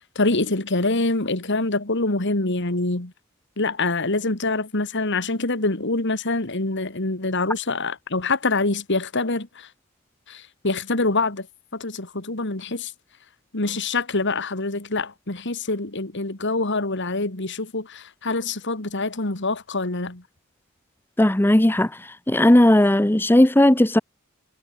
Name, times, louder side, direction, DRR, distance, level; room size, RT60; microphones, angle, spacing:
voice 1, 0.2-3.1 3.6-9.7 10.3-11.5 11.7-12.9 13.5-20.2, left 2 dB, 60° left, 2.7 m, -25 dB
voice 2, 21.2-21.9 22.3-24.0, left 1 dB, 10° left, 0.8 m, -16 dB
head